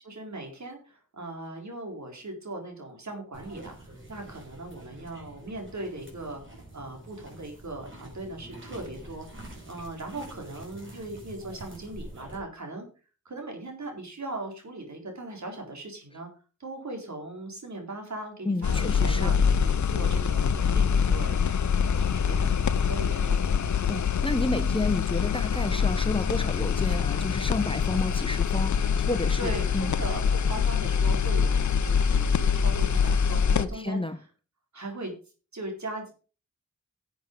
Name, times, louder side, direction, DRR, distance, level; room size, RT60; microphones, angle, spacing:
voice 1, 0.0-6.4 6.7-9.3 9.7-12.9 13.3-16.3 16.6-23.5 29.4-34.3 34.7-35.1 35.5-36.1, right 2 dB, 70° right, 3.8 m, -39 dB
sound 1, 3.3-12.4, right 1 dB, 40° right, 5.4 m, -46 dB
voice 2, 18.4-19.3 23.9-29.9 33.6-34.2, left 2 dB, 20° left, 1.2 m, -31 dB
sound 2, 18.6-33.7, left 6 dB, 75° left, 0.8 m, -25 dB
11.5 x 7.8 x 5.1 m
cardioid pair, 50°, 30 cm